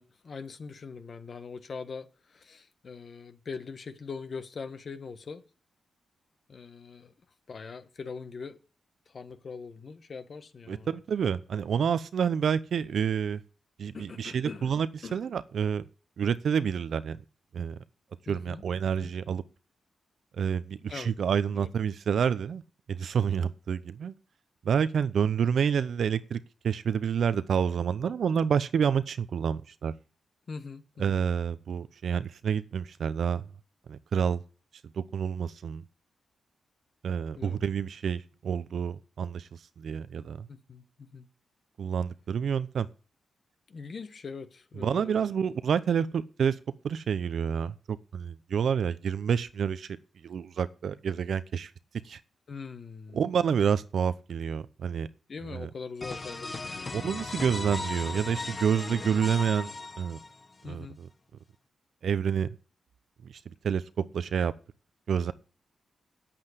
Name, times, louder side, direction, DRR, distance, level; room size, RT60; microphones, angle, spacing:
voice 1, 0.0-5.4 6.5-7.1 7.5-8.6 9.1-11.0 13.9-14.7 15.0-15.2 18.3-18.6 19.0-19.1 20.9-21.1 21.5-21.7 30.5-31.2 37.3-37.6 40.5-41.3 43.7-45.3 52.5-53.2 55.3-56.9 60.6-61.0, left 5 dB, 55° left, 1.4 m, -42 dB
voice 2, 10.7-13.4 13.8-14.9 15.1-15.8 16.2-17.2 17.5-17.8 18.3-19.4 20.4-22.6 22.9-24.1 24.6-29.9 31.0-33.4 33.9-34.4 35.0-35.8 37.0-39.5 39.8-40.5 41.8-42.9 44.8-46.6 46.8-49.9 50.2-51.7 52.0-52.2 53.1-55.1 55.5-55.7 56.9-59.7 60.0-60.2 60.6-61.1 62.0-62.6 63.2-64.5 65.1-65.3, right 7 dB, 70° right, 0.7 m, -28 dB
sound 1, 56.0-60.6, left 3 dB, 40° left, 1.4 m, -37 dB
8.8 x 7.7 x 8.1 m
cardioid pair, 70°, 0 cm